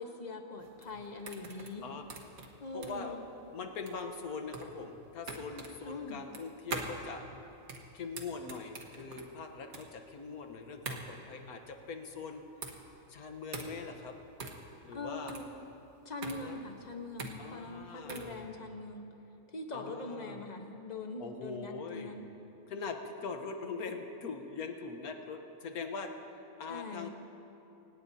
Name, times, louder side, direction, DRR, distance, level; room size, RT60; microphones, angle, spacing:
voice 1, 0.0-1.8 2.6-3.3 5.9-6.2 14.9-15.5 16.0-19.1 19.5-22.3 26.7-27.1, left 2 dB, 30° left, 4 dB, 1.2 m, -42 dB
sound 1, 0.6-18.4, right 3 dB, 70° right, 1.8 m, -44 dB
voice 2, 2.7-3.2 3.5-7.2 7.9-12.7 13.1-14.2 14.8-15.4 16.2-16.6 17.4-18.5 19.7-20.4 21.2-22.1 22.7-27.1, left 4 dB, 75° left, 5 dB, 1.6 m, -42 dB
25.0 x 18.5 x 2.8 m, 3.0 s
omnidirectional pair, 1.6 m